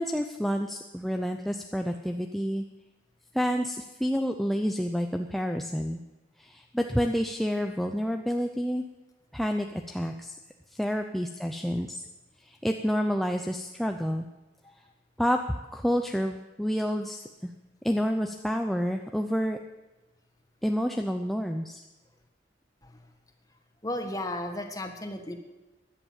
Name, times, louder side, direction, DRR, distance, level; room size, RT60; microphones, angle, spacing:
voice 1, 0.0-2.6 3.3-6.0 6.4-8.8 9.3-10.4 10.7-12.0 12.4-14.3 15.2-15.4 15.7-17.5 17.8-19.6 20.6-21.8, equal, ahead, 4 dB, 0.6 m, -29 dB
voice 2, 23.8-25.3, left 1 dB, 20° left, 5 dB, 1.6 m, -34 dB
16.0 x 11.0 x 7.4 m, 1.1 s
head